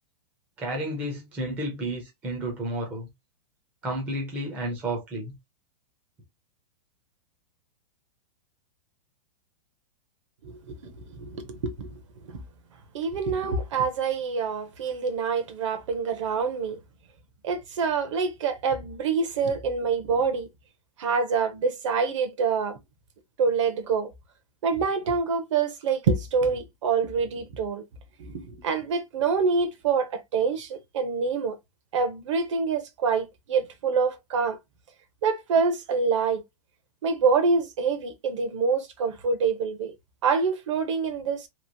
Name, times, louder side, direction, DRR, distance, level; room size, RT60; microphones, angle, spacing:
voice 1, 0.6-3.1 3.8-5.3, right 1 dB, 5° right, 0.5 m, -31 dB
voice 2, 10.4-11.9 12.9-16.8 17.4-20.5 21.0-22.8 23.4-24.1 24.6-27.8 28.2-31.6 31.9-34.6 35.2-36.4 37.0-39.9 40.2-41.5, right 5 dB, 50° right, 0.7 m, -26 dB
3.0 x 2.5 x 2.6 m
supercardioid pair, 175°, 20 cm